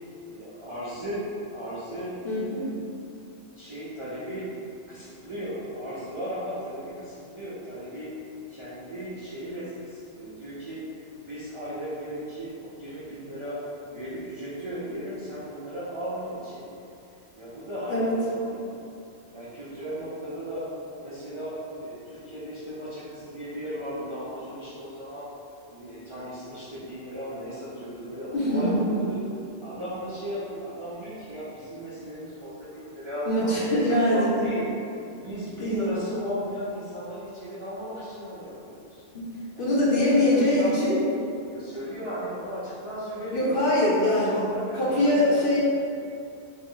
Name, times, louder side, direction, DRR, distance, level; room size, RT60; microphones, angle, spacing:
voice 1, 0.3-2.8 3.6-4.5 4.9-8.1 8.5-10.8 11.2-13.6 13.9-16.8 17.3-18.9 19.3-20.7 21.0-25.3 25.7-29.2 29.6-34.7 35.1-39.0 39.5-40.7 41.4-43.8 44.2-45.6, equal, 40° right, -11 dB, 0.5 m, -36 dB
voice 2, 2.2-2.7 17.9-18.1 28.3-28.8 33.2-34.3 35.6-35.9 39.1-41.0 43.3-44.4 44.7-45.6, left 1 dB, 55° left, -6 dB, 0.8 m, -23 dB
4.0 x 2.0 x 3.7 m, 2.6 s
omnidirectional pair, 1.2 m